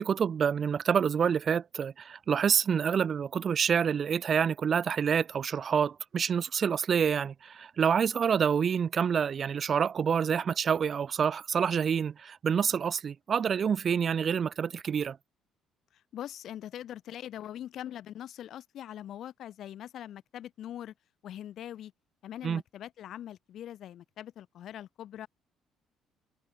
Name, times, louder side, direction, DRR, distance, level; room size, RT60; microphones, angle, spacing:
voice 1, 0.0-15.2 22.4-22.6, right 7 dB, 40° right, 1.4 m, -27 dB
voice 2, 16.1-20.9 21.2-21.9 22.2-25.3, left 11 dB, 60° left, 4.9 m, -42 dB
cardioid pair, 125°, 0 cm